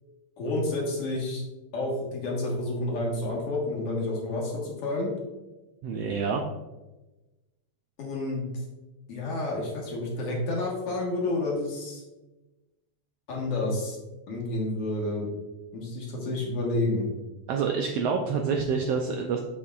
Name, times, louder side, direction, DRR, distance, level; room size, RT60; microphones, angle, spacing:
voice 1, 0.4-1.4 1.7-5.1 8.0-8.4 9.1-12.0 13.3-14.0 14.3-15.3 15.7-17.1, left 2 dB, 60° left, -3 dB, 2.3 m, -29 dB
voice 2, 5.8-6.4 17.5-19.4, right 5 dB, 80° right, 3 dB, 1.4 m, -27 dB
7.0 x 6.8 x 2.4 m, 1.1 s
omnidirectional pair, 3.3 m